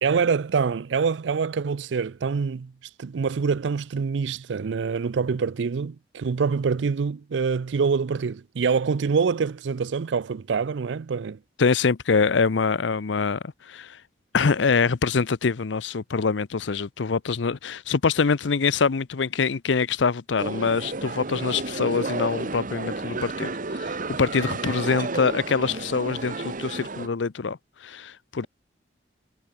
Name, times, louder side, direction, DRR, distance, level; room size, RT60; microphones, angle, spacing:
voice 1, 0.0-2.7 3.0-11.4, right 5 dB, 75° right, 0.4 m, -25 dB
voice 2, 11.6-14.0 14.3-28.5, left 5 dB, 80° left, 0.6 m, -24 dB
sound 1, 20.4-27.1, right 3 dB, 45° right, 1.4 m, -32 dB
head